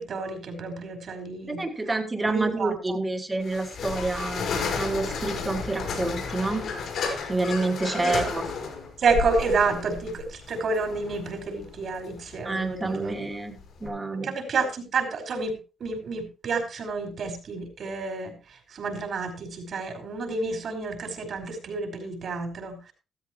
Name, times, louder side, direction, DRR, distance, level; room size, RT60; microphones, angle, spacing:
voice 1, 0.0-1.6 2.3-2.7 7.9-8.2 9.0-13.1 14.2-15.5 15.8-18.3 18.7-22.9, right 4 dB, 55° right, 6 dB, 4.9 m, -29 dB
voice 2, 1.4-4.5 4.8-6.7 7.3-8.5 12.4-14.3, right 2 dB, 20° right, 4 dB, 2.7 m, -28 dB
sound 1, 3.4-13.9, left 5 dB, 70° left, 5.3 m, -33 dB
14.5 x 13.5 x 3.1 m, 0.31 s
cardioid pair, 90°, 0 cm